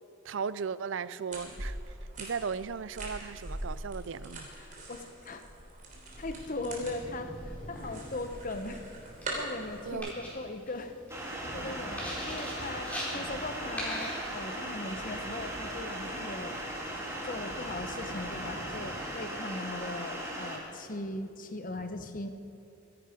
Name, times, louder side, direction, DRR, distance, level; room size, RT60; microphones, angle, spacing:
voice 1, 0.2-1.8 2.2-4.5 9.8-10.1, right 6 dB, 65° right, 17 dB, 0.4 m, -36 dB
sound 1, 1.3-9.9, right 1 dB, 40° right, 3.4 m, -42 dB
voice 2, 4.6-5.4 6.2-7.3 7.7-8.8 9.3-10.9 11.5-16.5 17.2-22.3, left 2 dB, 40° left, 8 dB, 1.0 m, -39 dB
sound 2, 6.1-19.3, equal, 5° left, 4.4 m, -44 dB
sound 3, 11.1-20.6, right 1 dB, 15° right, 2.5 m, -38 dB
24.0 x 11.0 x 5.2 m, 2.6 s
head